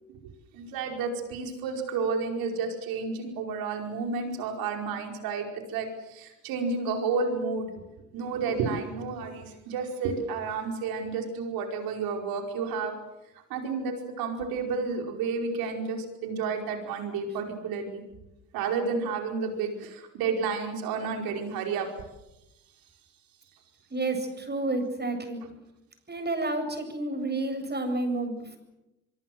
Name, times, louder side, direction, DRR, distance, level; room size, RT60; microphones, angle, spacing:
voice 1, 0.5-7.7 8.1-12.9 13.5-18.0 18.5-21.9, right 4 dB, 75° right, 3 dB, 5.1 m, -31 dB
voice 2, 23.9-25.4 26.1-28.6, right 2 dB, 30° right, 6 dB, 7.9 m, -30 dB
25.0 x 24.0 x 7.8 m, 0.95 s
hypercardioid pair, 55°, 36 cm